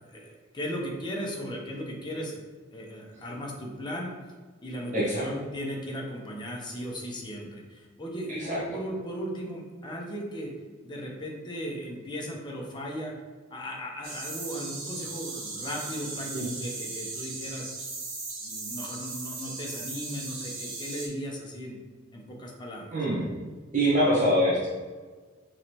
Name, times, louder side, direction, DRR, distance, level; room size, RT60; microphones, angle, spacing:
voice 1, 0.1-2.4 2.7-4.1 4.6-10.5 10.8-13.1 13.5-17.7 18.4-21.8 22.1-23.0, equal, 25° left, -1 dB, 0.7 m, -37 dB
voice 2, 4.9-5.2 8.4-8.6 16.3-16.4 22.9-23.2 23.7-24.7, equal, 40° right, -6 dB, 0.9 m, -24 dB
sound 1, 14.0-21.1, right 3 dB, 65° right, 0.9 m, -37 dB
4.8 x 3.2 x 2.8 m, 1.4 s
head